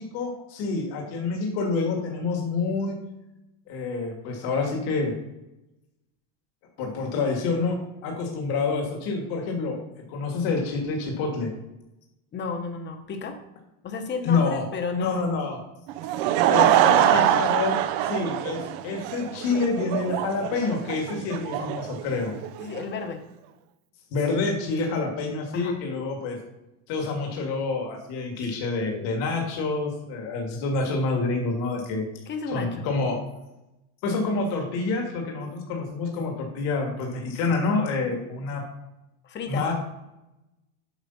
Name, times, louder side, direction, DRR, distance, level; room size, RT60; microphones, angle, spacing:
voice 1, 0.0-3.0 3.7-5.1 6.8-7.8 8.0-9.8 10.1-11.5 14.2-14.6 14.9-15.6 16.5-22.3 24.1-26.4 26.9-32.0 32.5-33.2 34.0-38.6 39.5-39.7, left 3 dB, 55° left, 1 dB, 2.0 m, -27 dB
voice 2, 12.3-13.4 13.8-15.4 16.7-17.4 22.6-23.2 25.5-25.8 32.3-32.9 39.2-39.6, left 5 dB, 25° left, 6 dB, 1.0 m, -32 dB
Laughter / Crowd, 15.9-22.8, right 12 dB, 60° right, 0.7 m, -23 dB
8.2 x 5.1 x 5.5 m, 0.95 s
cardioid pair, 155°, 44 cm